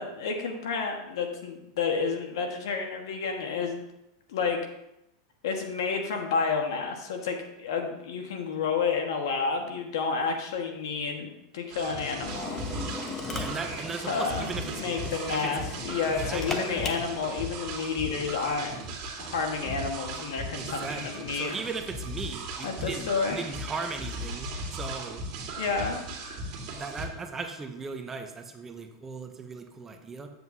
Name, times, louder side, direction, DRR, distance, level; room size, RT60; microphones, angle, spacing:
voice 1, 0.0-3.8 4.3-4.6 5.4-11.3 11.5-12.6 14.1-18.7 19.2-21.5 22.6-23.4 25.6-26.0, left 5 dB, 80° left, 3 dB, 1.5 m, -30 dB
sound 1, 11.7-27.1, right 2 dB, 45° right, 1.9 m, -37 dB
Drill, 12.2-17.3, left 3 dB, 20° left, 0.8 m, -38 dB
voice 2, 13.3-15.5 16.2-16.7 20.6-25.2 26.7-30.3, right 4 dB, 15° right, 5 dB, 0.7 m, -38 dB
9.2 x 7.8 x 2.7 m, 0.85 s
supercardioid pair, 145°, 2 cm